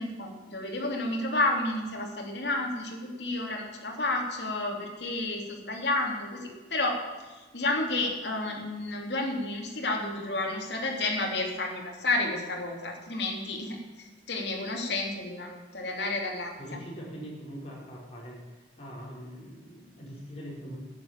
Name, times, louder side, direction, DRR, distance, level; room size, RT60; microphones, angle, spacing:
voice 1, 0.0-7.0 7.5-16.8, left 2 dB, 70° left, 0 dB, 3.0 m, -31 dB
voice 2, 16.6-18.4 18.8-20.8, equal, 35° left, -4 dB, 5.2 m, -42 dB
12.0 x 9.8 x 9.0 m, 1.3 s
head